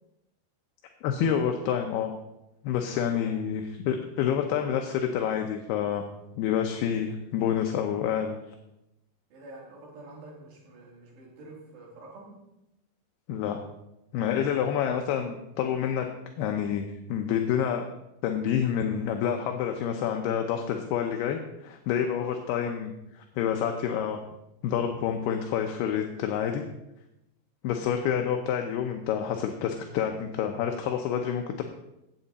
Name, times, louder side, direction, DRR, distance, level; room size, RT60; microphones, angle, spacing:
voice 1, 1.0-2.2 2.6-6.1 6.4-8.4 13.3-13.6 14.1-16.1 16.4-17.9 18.2-24.2 24.6-26.6 27.6-31.6, left 8 dB, 75° left, 4 dB, 2.6 m, -28 dB
voice 2, 3.0-3.4 9.3-12.4 14.3-14.6 22.1-22.3, right 2 dB, 70° right, -2 dB, 5.0 m, -48 dB
16.5 x 8.9 x 4.1 m, 0.90 s
omnidirectional pair, 5.1 m